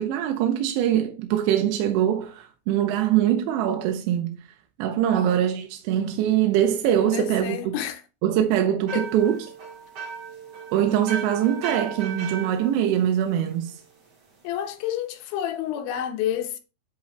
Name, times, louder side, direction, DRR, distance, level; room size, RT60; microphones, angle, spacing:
voice 1, 0.0-4.4 4.8-7.7 8.2-9.4 10.7-13.8, right 10 dB, 80° right, 3.0 m, -23 dB
voice 2, 7.0-8.0 8.9-9.1 14.4-16.6, left 10 dB, 80° left, 3.1 m, -29 dB
sound 1, 8.9-13.8, right 6 dB, 45° right, 2.2 m, -36 dB
10.5 x 4.1 x 3.2 m
omnidirectional pair, 5.4 m